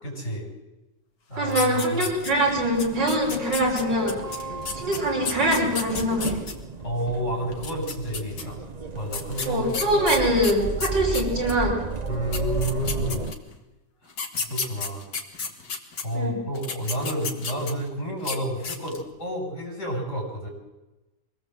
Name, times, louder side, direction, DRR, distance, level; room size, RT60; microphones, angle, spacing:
voice 1, 0.0-0.5 1.3-2.1 6.8-8.6 8.9-9.7 12.1-13.3 14.5-15.0 16.0-20.5, right 1 dB, 40° left, 0 dB, 6.8 m, -30 dB
voice 2, 1.4-4.2 4.7-6.4 9.4-11.8 16.1-16.4, right 1 dB, 85° right, -1 dB, 5.9 m, -23 dB
sound 1, 1.5-2.5 2.8-6.5 7.5-8.4 9.1-11.6 12.1-12.2 12.3-13.5 14.1-16.0 16.5-17.9 18.2-18.4 18.6-19.1, left 5 dB, 80° left, 2.6 m, -32 dB
sound 2, 2.1-13.3, right 3 dB, 30° right, 1.0 m, -33 dB
24.0 x 18.0 x 7.8 m, 1.0 s
omnidirectional pair, 1.9 m